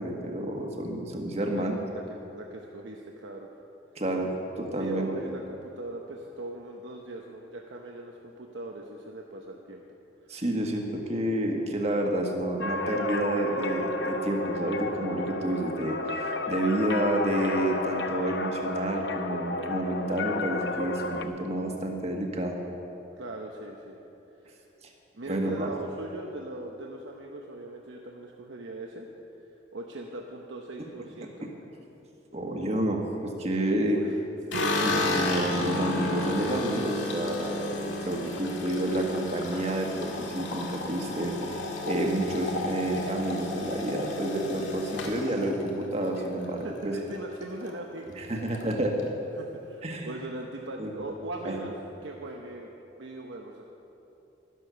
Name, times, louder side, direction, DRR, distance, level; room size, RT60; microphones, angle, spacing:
voice 1, 0.0-1.7 4.0-4.3 4.6-5.1 10.3-22.6 25.3-25.7 32.3-34.0 34.8-41.4 41.8-46.9 48.2-49.0 49.8-50.1 50.8-50.9 51.4-51.6, right 1 dB, 35° right, 2 dB, 1.4 m, -29 dB
voice 2, 1.3-1.7 1.9-2.0 2.3-3.5 4.8-9.8 10.2-10.4 23.2-24.0 24.4-24.6 25.1-29.1 29.7-31.5 33.6-34.2 34.5-35.2 46.6-48.3 49.4-51.7 52.0-52.7 53.0-53.6, right 2 dB, 80° right, 0 dB, 0.9 m, -39 dB
sound 1, 12.6-21.2, left 2 dB, 65° left, 0.8 m, -32 dB
sound 2, 34.5-46.8 47.1-47.7 48.0-48.1 48.4-49.1, left 2 dB, 80° left, 1.9 m, -33 dB
12.0 x 11.0 x 6.8 m, 2.9 s
head